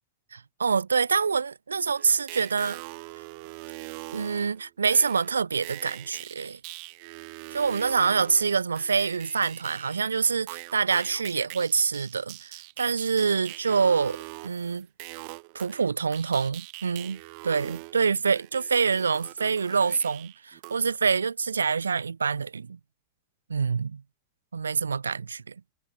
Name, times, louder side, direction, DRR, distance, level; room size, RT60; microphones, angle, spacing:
voice 1, 0.3-2.8 4.1-6.6 7.5-14.2 14.4-14.9 15.5-22.8 23.5-24.0 24.5-25.5, right 5 dB, 75° right, 0.8 m, -26 dB
sound 1, 2.0-10.1 10.5-20.8, right 34 dB, 45° right, 1.6 m, -43 dB
figure-of-eight pair, 90°, 0 cm